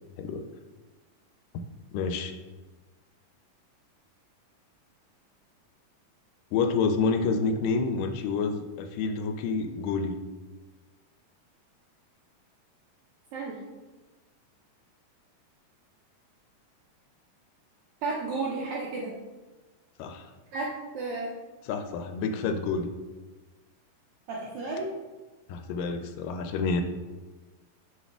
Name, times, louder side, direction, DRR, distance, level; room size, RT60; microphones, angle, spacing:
voice 1, 1.9-2.3 6.5-10.2 20.0-20.3 21.6-22.9 25.5-26.8, left 4 dB, 80° left, 6 dB, 2.1 m, -28 dB
voice 2, 18.0-19.2 20.5-21.3 24.3-24.9, right 3 dB, 80° right, -3 dB, 1.6 m, -32 dB
7.1 x 4.2 x 3.5 m, 1.2 s
omnidirectional pair, 4.0 m